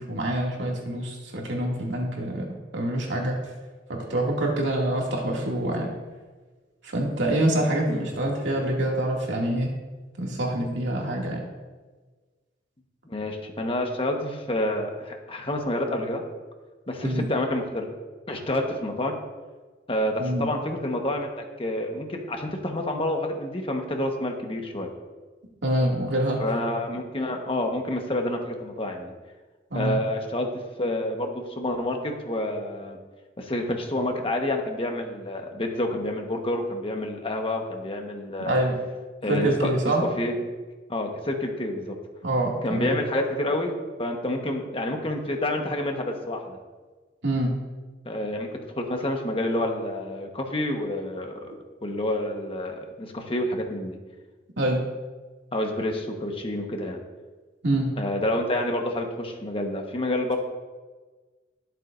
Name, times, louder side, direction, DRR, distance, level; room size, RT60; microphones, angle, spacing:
voice 1, 0.0-3.4 3.9-5.9 6.8-9.7 10.2-11.4 17.0-17.3 20.2-20.5 25.6-26.4 29.7-30.0 38.5-38.8 39.3-40.0 42.2-42.9 47.2-47.5 54.6-54.8 57.6-57.9, right 1 dB, 90° right, -2 dB, 2.4 m, -26 dB
voice 2, 13.1-16.2 16.9-17.9 18.3-19.2 19.9-24.9 26.4-29.1 29.7-33.0 33.4-38.6 39.2-39.7 40.2-40.3 40.9-41.8 42.6-46.6 48.0-48.5 48.8-54.0 55.5-57.0 58.0-60.4, left 1 dB, 30° left, 2 dB, 1.3 m, -28 dB
20.5 x 7.5 x 2.6 m, 1.3 s
head